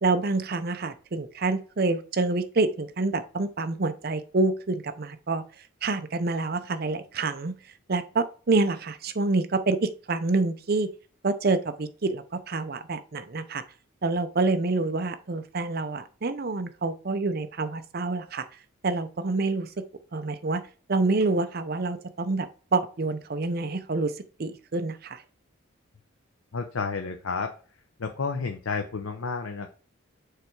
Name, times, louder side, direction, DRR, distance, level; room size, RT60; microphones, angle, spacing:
voice 1, 0.0-5.4 5.8-7.5 7.9-10.9 11.2-13.6 14.0-18.4 18.8-19.7 20.1-20.6 20.9-24.1 24.4-25.2, right 3 dB, 50° right, 10 dB, 0.6 m, -27 dB
voice 2, 26.5-27.5 28.0-29.7, left 4 dB, 85° left, 5 dB, 0.7 m, -31 dB
6.6 x 3.3 x 4.6 m, 0.39 s
head